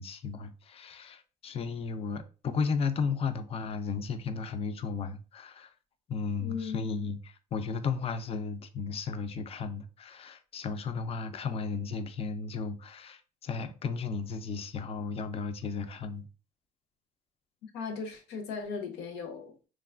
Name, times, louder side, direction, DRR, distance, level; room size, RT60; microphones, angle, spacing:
voice 1, 0.0-5.7 6.1-16.3, left 5 dB, 35° left, 0.4 m, -34 dB
voice 2, 6.4-6.9 17.7-19.6, left 5 dB, 90° left, 0.7 m, -37 dB
3.0 x 2.3 x 2.4 m
cardioid pair, 110°, 17 cm